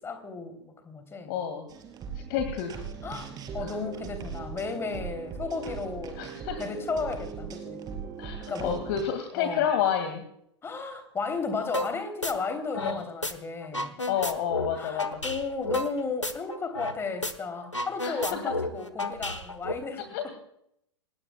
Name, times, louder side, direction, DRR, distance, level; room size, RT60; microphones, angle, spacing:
voice 1, 0.0-1.4 3.0-6.2 6.6-7.8 8.4-8.9 9.3-9.7 10.6-14.0 14.7-20.3, left 4 dB, 15° left, 7 dB, 3.2 m, -34 dB
voice 2, 1.3-1.7 2.3-2.7 3.6-3.7 6.2-6.6 8.2-10.2 12.8-13.0 14.1-15.2 18.0-18.4 20.1-20.3, left 8 dB, 45° left, 7 dB, 2.1 m, -29 dB
sound 1, 1.7-9.0, right 6 dB, 25° right, 3.8 m, -39 dB
sound 2, 11.7-11.9 12.2-13.3 13.6-17.0 17.2-17.3 17.6-19.7, left 2 dB, 90° left, 1.4 m, -32 dB
29.0 x 20.5 x 2.3 m, 0.74 s
figure-of-eight pair, 95°, 15 cm